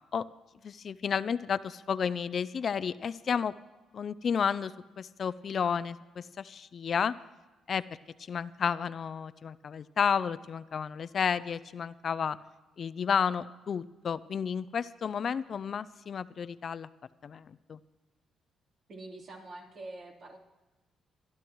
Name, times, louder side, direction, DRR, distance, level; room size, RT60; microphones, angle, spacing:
voice 1, 0.6-3.6 3.9-7.1 7.7-7.8 8.3-12.4 12.8-16.9 17.2-17.8, left 7 dB, 50° left, 15 dB, 0.4 m, -32 dB
voice 2, 18.9-20.4, right 2 dB, 55° right, -1 dB, 3.6 m, -45 dB
25.5 x 12.0 x 3.0 m, 1.2 s
cardioid pair, 90°, 0 cm